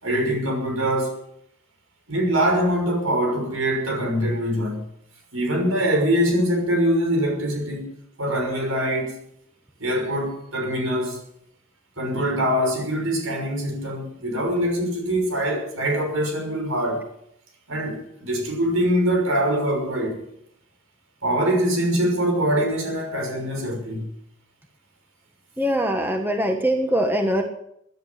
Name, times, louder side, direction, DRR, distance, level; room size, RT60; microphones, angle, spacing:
voice 1, 0.0-1.1 2.1-4.8 5.3-7.9 8.2-9.1 9.8-11.2 12.0-17.1 17.7-20.2 21.2-24.1, equal, 80° right, 6.0 m, -23 dB
voice 2, 25.6-27.4, equal, 10° right, 1.6 m, -22 dB
17.0 x 10.5 x 7.3 m
head